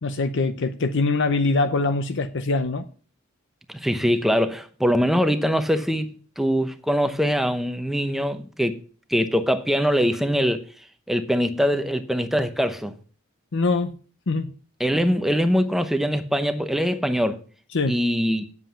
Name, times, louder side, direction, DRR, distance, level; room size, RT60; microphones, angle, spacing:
voice 1, 0.0-2.9 13.5-13.9 14.3-14.5 17.7-18.0, left 3 dB, 60° left, 0.7 m, -23 dB
voice 2, 3.7-8.8 9.1-10.6 11.1-12.9 14.8-17.4 17.9-18.4, equal, ahead, 0.8 m, -23 dB
9.5 x 7.7 x 5.6 m
head